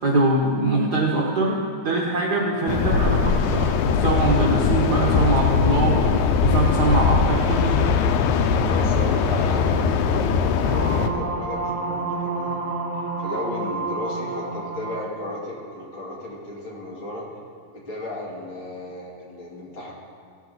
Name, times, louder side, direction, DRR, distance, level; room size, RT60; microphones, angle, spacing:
voice 1, 0.0-6.2 6.4-7.8, right 2 dB, 85° right, -3 dB, 0.9 m, -23 dB
sound 1, 2.7-11.1, left 5 dB, 85° left, 2.0 m, -20 dB
voice 2, 8.7-17.2 17.7-19.9, left 1 dB, 45° left, -4 dB, 2.3 m, -34 dB
sound 2, 10.6-15.1, right 3 dB, 50° right, 2.3 m, -29 dB
16.0 x 8.1 x 3.9 m, 2.1 s
omnidirectional pair, 3.4 m